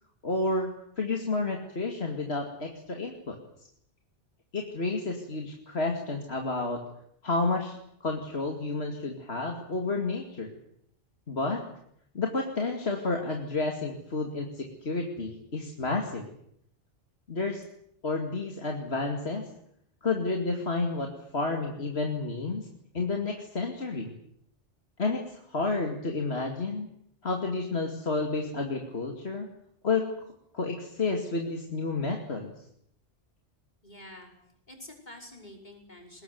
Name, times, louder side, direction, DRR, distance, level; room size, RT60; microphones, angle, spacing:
voice 1, 0.2-0.7 1.0-3.4 4.5-6.8 7.2-10.5 11.3-11.6 12.1-16.3 17.3-17.6 18.0-19.5 20.0-22.7 22.9-24.1 25.0-26.9 27.2-29.5 29.8-30.1 30.5-32.5, left 3 dB, 60° left, 2 dB, 2.7 m, -30 dB
voice 2, 33.8-34.3 34.7-36.2, left 1 dB, 40° left, 2 dB, 5.7 m, -47 dB
21.5 x 20.0 x 9.5 m, 0.72 s
omnidirectional pair, 1.2 m